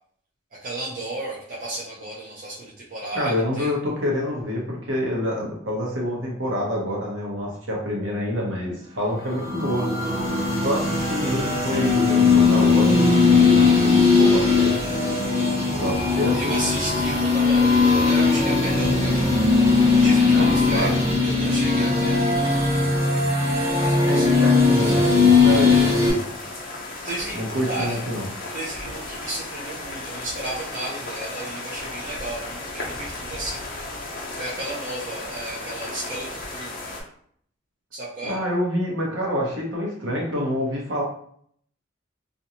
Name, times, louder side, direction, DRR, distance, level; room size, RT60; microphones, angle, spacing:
voice 1, 0.6-3.7 16.3-19.3 19.9-20.9 21.2-22.5 23.8-24.4 24.8-25.1 25.5-25.7 27.0-28.0 28.5-33.6 34.3-36.7 37.9-38.4, right 1 dB, 45° right, -6 dB, 0.5 m, -33 dB
voice 2, 3.1-9.9 10.6-14.9 15.7-16.4 20.3-20.9 24.0-26.2 27.3-28.3 38.2-41.0, equal, 65° right, -2 dB, 0.9 m, -27 dB
sound 1, 9.2-26.1, left 4 dB, 25° right, 1.2 m, -19 dB
sound 2, 25.7-37.0, left 2 dB, 45° left, 0.6 m, -35 dB
2.5 x 2.2 x 2.8 m, 0.63 s
head